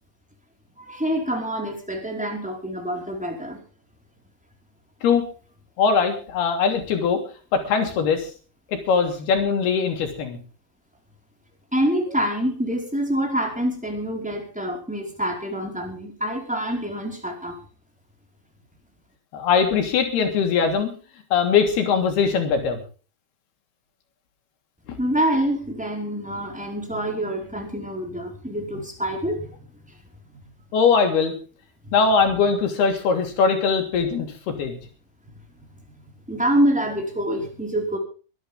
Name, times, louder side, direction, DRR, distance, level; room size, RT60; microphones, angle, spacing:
voice 1, 0.8-3.6 11.7-17.6 25.0-29.5 31.8-31.9 36.3-38.0, right 1 dB, ahead, 2 dB, 4.3 m, -26 dB
voice 2, 5.8-7.2 7.5-8.3 8.7-10.4 19.3-20.9 21.3-22.8 30.7-31.3 31.9-34.8, left 5 dB, 85° left, 4 dB, 5.1 m, -21 dB
23.5 x 11.5 x 3.6 m, 0.36 s
omnidirectional pair, 4.4 m